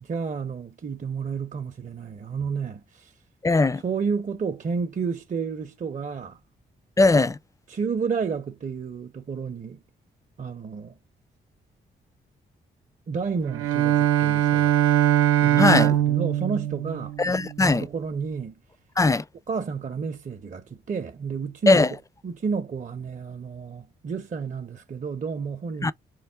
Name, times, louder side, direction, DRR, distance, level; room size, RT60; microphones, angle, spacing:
voice 1, 0.0-3.1 3.8-6.4 7.7-9.8 10.4-10.9 13.1-14.8 15.4-17.2 17.6-18.5 19.5-22.0 22.2-25.9, right 5 dB, 35° right, 0.6 m, -31 dB
voice 2, 3.4-3.8 7.0-7.4 15.6-16.0 17.2-17.8 19.0-19.2 21.7-21.9 25.8-25.9, left 3 dB, 15° left, 0.4 m, -19 dB
Bowed string instrument, 13.5-17.6, right 12 dB, 80° right, 0.4 m, -22 dB
4.5 x 2.1 x 3.4 m
hypercardioid pair, 45°, 21 cm